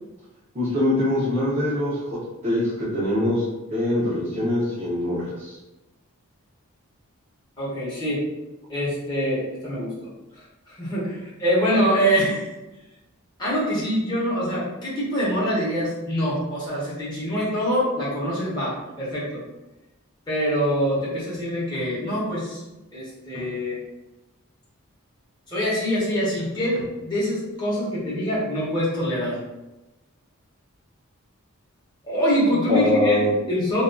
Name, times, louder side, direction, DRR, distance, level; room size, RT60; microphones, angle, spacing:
voice 1, 0.5-2.0 2.4-3.4 3.7-5.6 32.7-33.3, left 1 dB, 30° right, -10 dB, 0.5 m, -23 dB
voice 2, 7.6-8.3 8.7-12.5 13.4-19.4 20.3-22.6 22.9-23.8 25.5-29.4 32.0-33.2 33.5-33.8, equal, 20° left, -8 dB, 0.8 m, -25 dB
2.5 x 2.3 x 2.2 m, 1.0 s
head